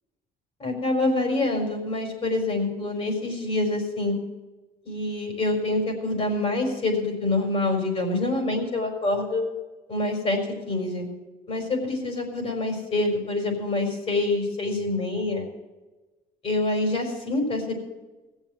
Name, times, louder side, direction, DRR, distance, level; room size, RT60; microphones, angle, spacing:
voice 1, 0.6-4.2 4.8-9.4 9.9-10.4 10.7-11.1 11.5-15.5 16.4-17.7, left 2 dB, 35° left, 2 dB, 4.7 m, -26 dB
18.0 x 7.3 x 7.8 m, 1.2 s
cardioid pair, 110°, 17 cm